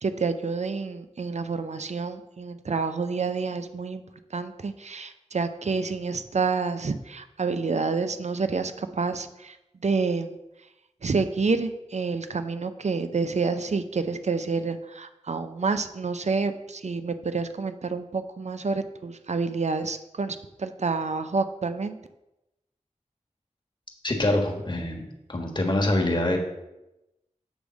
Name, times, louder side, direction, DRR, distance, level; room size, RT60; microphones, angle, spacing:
voice 1, 0.0-4.0 4.3-10.4 11.0-22.0, right 4 dB, 65° right, 10 dB, 0.5 m, -28 dB
voice 2, 24.0-25.0 25.3-26.4, left 1 dB, 35° left, 1 dB, 1.4 m, -24 dB
8.1 x 3.5 x 6.2 m, 0.93 s
wide cardioid pair, 70°, 13 cm